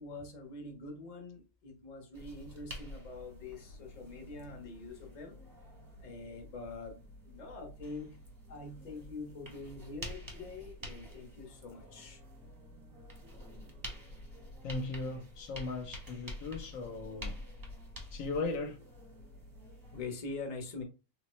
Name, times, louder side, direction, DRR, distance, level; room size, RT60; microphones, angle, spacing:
voice 1, 0.0-5.4 6.0-8.2 8.5-12.2 19.9-20.8, left 3 dB, 35° left, 0.8 m, -45 dB
sound 1, 2.1-20.0, left 1 dB, 20° right, 0.6 m, -48 dB
voice 2, 14.6-17.3 18.1-18.8, left 3 dB, 70° left, 1.0 m, -37 dB
3.7 x 2.1 x 3.0 m
omnidirectional pair, 1.5 m